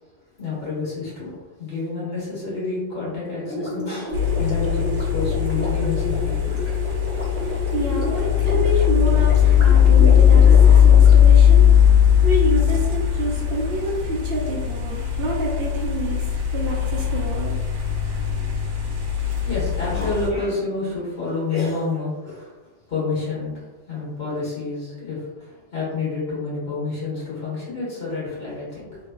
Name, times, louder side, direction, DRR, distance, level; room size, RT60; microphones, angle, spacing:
voice 1, 0.4-6.6 19.2-22.5 22.9-23.5 23.9-29.0, left 3 dB, 55° left, -8 dB, 1.8 m, -29 dB
Gurgling, 3.4-11.8, equal, 15° left, 0.6 m, -31 dB
sound 1, 4.1-20.3, left 9 dB, 85° right, 1.0 m, -18 dB
voice 2, 7.4-11.7 12.2-17.5, right 1 dB, 65° right, -2 dB, 0.7 m, -28 dB
3.5 x 2.6 x 2.3 m, 1.2 s
omnidirectional pair, 1.2 m